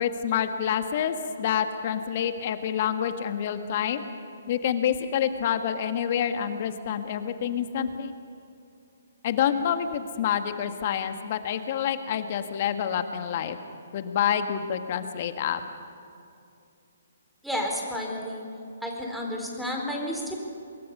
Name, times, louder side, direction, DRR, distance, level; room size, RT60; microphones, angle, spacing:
voice 1, 0.0-4.0 4.5-8.1 9.2-13.6 13.9-15.6, left 9 dB, 45° left, 8 dB, 1.6 m, -27 dB
voice 2, 17.4-18.4 18.8-20.3, equal, ahead, -1 dB, 4.0 m, -31 dB
26.0 x 21.5 x 5.6 m, 2.6 s
figure-of-eight pair, 135°, 0 cm